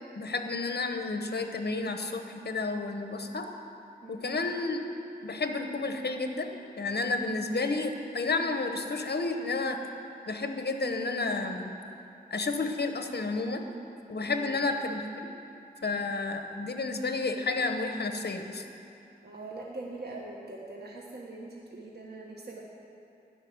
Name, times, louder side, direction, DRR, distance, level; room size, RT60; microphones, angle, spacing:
voice 1, 0.1-3.5 4.1-4.9 5.2-6.5 6.8-9.8 10.3-11.7 12.3-13.7 14.1-15.3 15.8-18.6, left 3 dB, 70° left, 5 dB, 1.0 m, -31 dB
voice 2, 4.0-4.5 14.3-14.6 19.2-22.6, right 2 dB, 70° right, -3 dB, 1.4 m, -42 dB
12.5 x 6.2 x 9.4 m, 2.8 s
wide cardioid pair, 65°, 17 cm